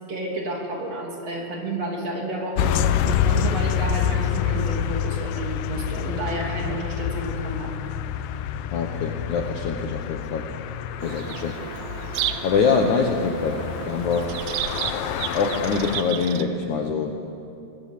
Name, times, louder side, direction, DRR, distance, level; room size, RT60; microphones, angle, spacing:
voice 1, 0.1-7.8 11.1-11.2, right 1 dB, 40° right, 0 dB, 3.9 m, -31 dB
sound 1, 2.6-16.0, left 9 dB, 80° left, 2.0 m, -27 dB
voice 2, 8.7-10.4 11.0-11.5 12.4-14.4 15.3-17.1, left 5 dB, 60° left, 3 dB, 2.2 m, -24 dB
Bird vocalization bird call bird song, 11.0-16.5, right 11 dB, 90° right, 3.2 m, -32 dB
25.5 x 22.0 x 8.5 m, 2.7 s
omnidirectional pair, 4.9 m